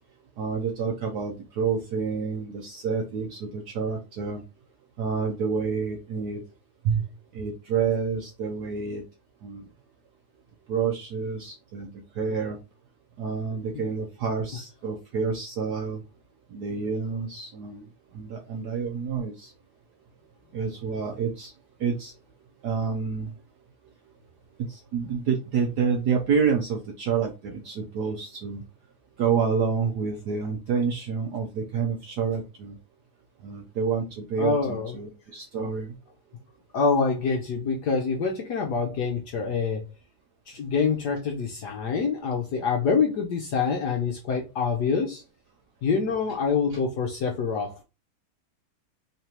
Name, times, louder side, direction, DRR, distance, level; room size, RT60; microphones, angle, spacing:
voice 1, 0.4-4.4 5.0-6.4 6.8-7.1 7.3-9.0 9.4-9.6 10.7-12.6 13.2-16.0 16.5-17.8 18.1-19.5 20.5-21.5 21.8-22.1 22.6-23.3 24.7-28.6 29.2-32.7 33.4-35.9 46.7-46.8, right 6 dB, 70° right, 1.0 m, -28 dB
voice 2, 34.4-35.0 36.7-39.9 40.5-45.2 45.8-47.8, left 5 dB, 65° left, 1.1 m, -26 dB
3.9 x 3.2 x 2.9 m
omnidirectional pair, 2.4 m